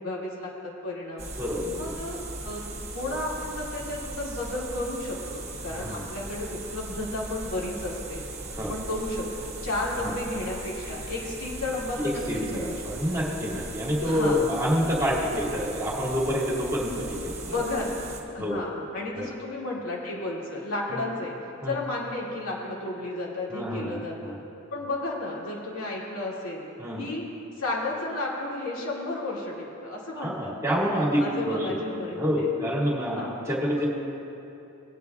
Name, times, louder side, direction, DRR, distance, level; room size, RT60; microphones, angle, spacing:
voice 1, 0.0-1.3 1.7-2.6 2.9-8.2 8.7-9.3 9.6-12.8 13.1-13.2 14.0-14.4 17.5-18.1 18.3-21.3 21.7-24.4 24.7-26.6 27.0-27.2 27.6-29.6 29.8-30.5 31.2-32.5 33.1-33.3 33.8-33.9, left 2 dB, 90° left, -4 dB, 2.2 m, -32 dB
sound 1, 1.2-18.2, right 2 dB, 30° right, 1.4 m, -38 dB
voice 2, 1.4-1.9 5.7-6.0 8.5-8.7 10.0-10.1 12.0-17.6 18.4-18.7 19.1-19.3 20.9-21.0 21.6-21.8 23.5-24.4 26.8-27.0 30.1-31.8 32.2-33.9, equal, 15° right, -6 dB, 2.1 m, -28 dB
19.5 x 9.2 x 2.4 m, 2.9 s
head